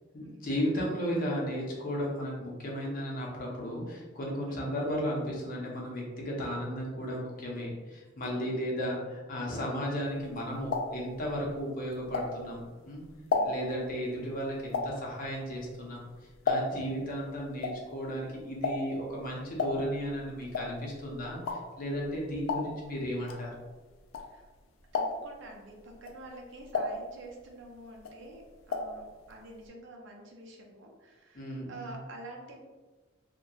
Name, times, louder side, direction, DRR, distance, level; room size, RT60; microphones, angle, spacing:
voice 1, 0.1-13.0 13.4-16.0 16.4-23.5 31.3-32.0, equal, 45° left, -3 dB, 0.6 m, -34 dB
voice 2, 8.3-8.6 13.3-13.6 24.2-24.5 24.9-32.6, right 1 dB, 65° right, 0 dB, 0.5 m, -48 dB
sound 1, 10.2-12.7 13.1-17.0 17.3-24.6 24.9-25.4 25.9-27.6 27.9-29.0 29.3-29.4 29.6-29.7, left 3 dB, 85° left, 0.3 m, -34 dB
2.7 x 2.2 x 2.3 m, 1.3 s
head